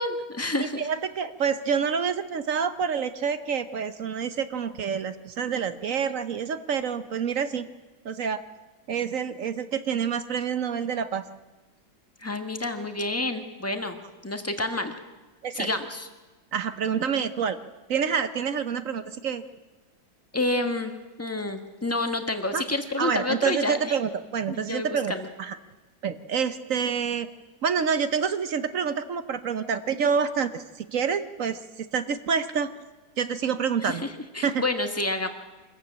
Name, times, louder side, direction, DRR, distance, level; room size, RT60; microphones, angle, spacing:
voice 1, 0.0-0.9 12.2-14.0 14.2-14.9 15.5-16.1 20.3-20.9 21.2-24.0 24.5-25.3 33.8-34.1 34.3-35.3, left 2 dB, 10° left, 6 dB, 1.4 m, -29 dB
voice 2, 0.6-7.7 8.0-8.4 8.9-11.2 15.4-15.7 16.5-17.6 17.9-19.4 22.5-22.6 23.0-25.1 25.4-25.6 26.0-27.3 27.6-32.7 33.2-34.0 34.4-34.6, right 6 dB, 55° right, 12 dB, 1.1 m, -27 dB
24.5 x 14.5 x 8.8 m, 1.2 s
omnidirectional pair, 1.8 m